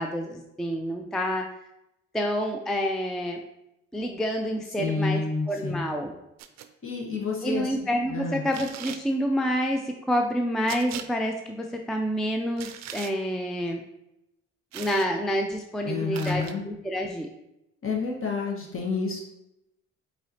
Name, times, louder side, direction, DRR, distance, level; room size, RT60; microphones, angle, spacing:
voice 1, 0.0-1.5 2.1-3.4 3.9-5.2 5.5-6.1 7.4-13.8 14.7-17.3, equal, ahead, 3 dB, 0.3 m, -28 dB
voice 2, 4.8-5.8 6.8-7.7 8.1-8.4 15.8-16.6 17.8-19.2, left 4 dB, 45° left, -1 dB, 1.4 m, -29 dB
sound 1, 6.4-6.7 8.5-9.0 10.7-11.1 12.6-13.1 14.7-15.1 16.1-16.5, right 10 dB, 65° right, 0.4 m, -39 dB
4.6 x 4.1 x 2.8 m, 0.87 s
cardioid pair, 90°, 30 cm